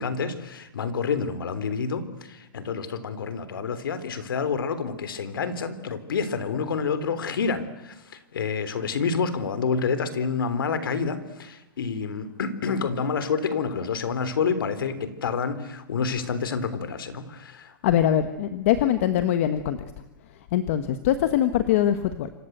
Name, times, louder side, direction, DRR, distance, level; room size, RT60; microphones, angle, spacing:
voice 1, 0.0-17.7, left 5 dB, 80° left, 13 dB, 3.6 m, -28 dB
voice 2, 17.8-19.8 20.5-22.3, left 11 dB, 40° left, 10 dB, 1.3 m, -22 dB
27.0 x 26.0 x 8.0 m, 0.96 s
hypercardioid pair, 170°, 12 cm